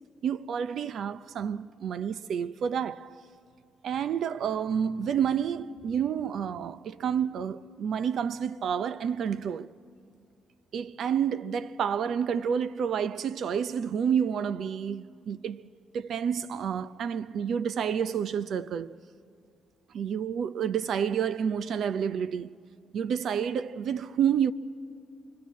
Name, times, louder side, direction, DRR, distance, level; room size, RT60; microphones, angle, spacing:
voice 1, 0.2-3.2 3.8-9.7 10.7-15.7 15.9-19.0 19.9-22.5 22.9-24.5, right 8 dB, 65° right, 0.6 m, -29 dB
26.0 x 24.0 x 8.4 m
cardioid pair, 90°, 0 cm